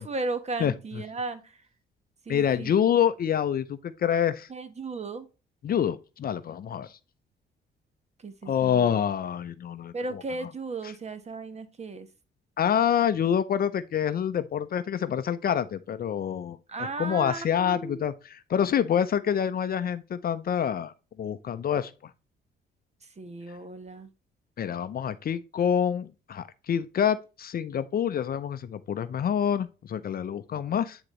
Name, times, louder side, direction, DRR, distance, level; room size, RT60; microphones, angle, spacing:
voice 1, 0.0-1.6 2.2-2.7 4.5-5.3 8.2-8.9 9.9-12.1 16.7-18.1 23.0-24.1, right 3 dB, 35° right, 1.2 m, -35 dB
voice 2, 2.3-4.5 5.6-6.9 8.5-10.2 12.6-20.9 21.2-21.9 24.6-31.0, left 8 dB, 50° left, 0.6 m, -27 dB
9.7 x 4.0 x 3.1 m
cardioid pair, 90°, 20 cm